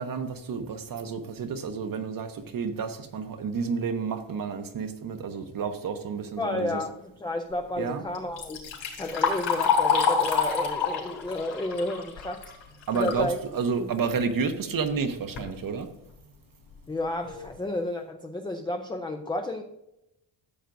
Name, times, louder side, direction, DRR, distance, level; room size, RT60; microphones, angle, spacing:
voice 1, 0.0-6.8 7.8-8.0 12.9-15.9, right 5 dB, 45° right, 0.8 m, -30 dB
voice 2, 6.4-8.6 9.0-12.5 12.9-13.4 13.8-13.9 16.9-19.6, left 2 dB, 10° left, 0.4 m, -31 dB
Liquid, 8.2-13.3 13.7-13.8 14.7-14.8 15.2-15.5 16.1-16.2 16.7-16.8 17.2-17.5, left 6 dB, 70° left, 3.4 m, -27 dB
13.5 x 7.9 x 2.6 m
wide cardioid pair, 170°, 47 cm